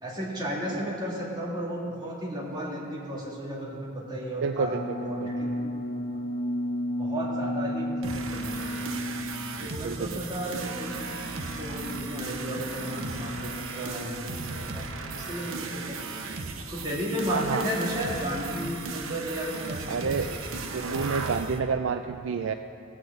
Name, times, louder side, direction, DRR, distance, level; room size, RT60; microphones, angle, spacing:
voice 1, 0.0-5.6 7.0-8.9 9.6-16.0 16.7-20.4 20.7-21.1, equal, 20° right, -4 dB, 2.3 m, -34 dB
voice 2, 4.4-5.3 9.8-10.2 17.3-17.6 19.9-20.3 20.7-22.5, right 5 dB, 70° right, 8 dB, 0.4 m, -29 dB
sound 1, 4.7-15.6, equal, 30° left, 2.2 m, -35 dB
sound 2, 8.0-21.6, right 3 dB, 90° right, 0.9 m, -36 dB
15.5 x 6.4 x 7.9 m, 2.6 s
head